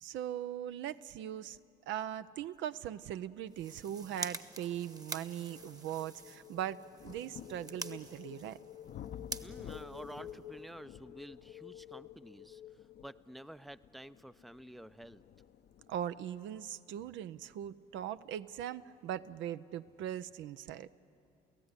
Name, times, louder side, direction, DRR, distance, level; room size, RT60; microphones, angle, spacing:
voice 1, 0.0-1.6 1.9-8.6 15.9-20.9, right 10 dB, 65° right, 12 dB, 0.6 m, -40 dB
sound 1, 3.4-10.7, right 2 dB, 20° right, 1.2 m, -47 dB
sound 2, 4.1-4.2 4.8-19.4 20.3-20.4, left 9 dB, 55° left, 0.7 m, -54 dB
sound 3, 4.9-13.8, left 10 dB, 85° left, 1.0 m, -52 dB
voice 2, 9.4-12.6 13.0-15.2, right 1 dB, ahead, 14 dB, 0.6 m, -50 dB
29.0 x 16.0 x 9.8 m, 2.7 s
supercardioid pair, 65°, 21 cm